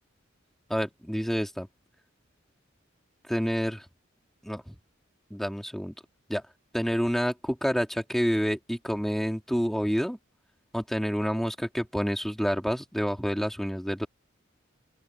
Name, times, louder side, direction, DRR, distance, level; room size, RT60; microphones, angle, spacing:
voice 1, 0.7-1.7 3.3-3.8 4.4-4.8 5.3-5.9 6.3-6.4 6.7-10.2 10.7-14.1, equal, ahead, 2.8 m, -28 dB
open air
head